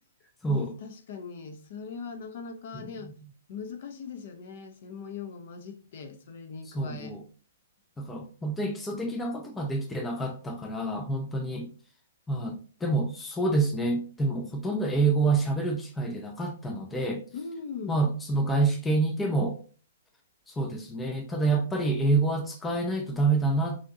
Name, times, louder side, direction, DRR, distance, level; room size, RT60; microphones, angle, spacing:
voice 1, 0.5-3.1 3.5-7.2 17.3-18.1, left 5 dB, 50° left, 0.8 m, -40 dB
voice 2, 6.7-7.2 8.0-11.7 12.3-17.2 17.9-19.6 20.5-23.8, right 3 dB, 10° left, 0.5 m, -27 dB
6.0 x 2.8 x 2.7 m
hypercardioid pair, 160°, 0 cm